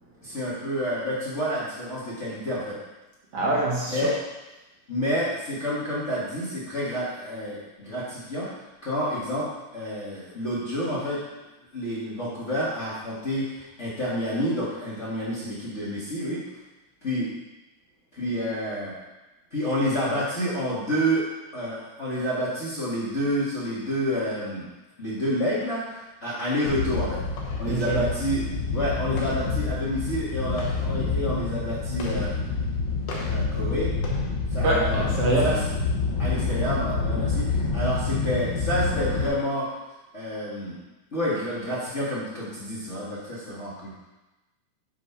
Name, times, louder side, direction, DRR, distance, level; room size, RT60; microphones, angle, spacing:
voice 1, 0.2-2.8 3.9-4.1 4.9-8.5 8.8-11.3 11.7-16.4 17.0-17.3 18.1-19.0 19.5-21.3 21.5-24.7 25.0-27.2 27.6-32.3 33.3-33.9 34.5-35.1 35.4-35.6 36.2-39.7 40.1-40.8 41.1-43.9, equal, 25° left, -10 dB, 1.9 m, -29 dB
voice 2, 3.3-4.1 27.7-28.0 34.6-35.5, right 2 dB, 60° right, -4 dB, 2.2 m, -24 dB
sound 1, 26.7-39.3, left 4 dB, 90° left, 2.5 m, -27 dB
6.2 x 5.3 x 5.6 m, 1.0 s
omnidirectional pair, 3.3 m